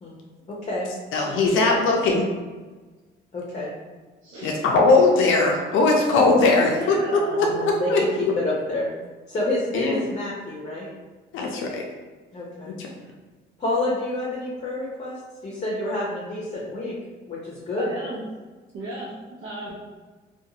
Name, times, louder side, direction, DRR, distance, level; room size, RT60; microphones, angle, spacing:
voice 1, 0.5-0.9 1.5-1.6 3.3-3.7 7.3-8.9 9.3-10.9 12.3-12.7 13.6-17.0 17.3-17.9, left 2 dB, 35° left, -6 dB, 0.7 m, -28 dB
voice 2, 1.1-2.3 4.4-8.0 9.7-10.0 11.3-11.8 12.8-12.9, left 3 dB, 85° left, 1 dB, 0.4 m, -20 dB
voice 3, 4.2-4.7 6.5-7.4 10.8-10.9 17.3-17.4 17.8-18.2 18.7-19.1 19.4-19.7, right 1 dB, 70° right, -8 dB, 0.6 m, -35 dB
2.5 x 2.3 x 2.7 m, 1.3 s
cardioid pair, 90°, 20 cm